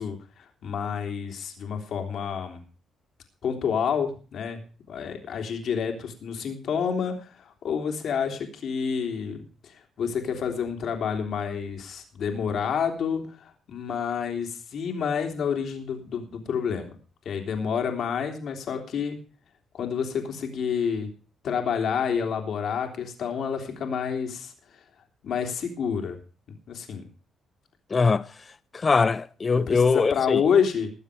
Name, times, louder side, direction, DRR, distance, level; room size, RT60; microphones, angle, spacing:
voice 1, 0.0-2.6 3.4-4.6 4.9-9.4 9.6-16.9 17.2-19.2 19.7-21.1 21.4-24.8 25.2-26.2 26.7-27.1 29.6-30.9, left 7 dB, 65° left, 3.4 m, -29 dB
voice 2, 27.9-28.3 28.7-30.4, left 4 dB, 35° left, 0.9 m, -22 dB
20.0 x 7.4 x 5.0 m
cardioid pair, 90°, 0 cm